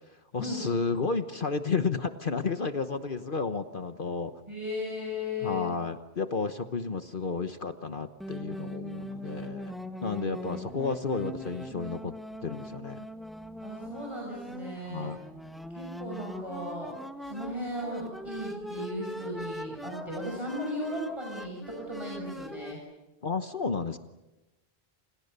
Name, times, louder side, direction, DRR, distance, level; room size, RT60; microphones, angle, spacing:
voice 1, 0.1-4.4 5.4-9.7 10.0-12.1 12.4-13.1 14.8-15.2 23.2-24.0, left 4 dB, 55° left, 8 dB, 1.3 m, -32 dB
voice 2, 4.5-5.7 10.0-10.3 13.6-15.1 15.7-22.8, left 1 dB, 30° right, -1 dB, 6.8 m, -36 dB
sound 1, 8.2-22.7, equal, ahead, 1.5 m, -41 dB
29.5 x 28.5 x 6.8 m, 1.0 s
omnidirectional pair, 1.1 m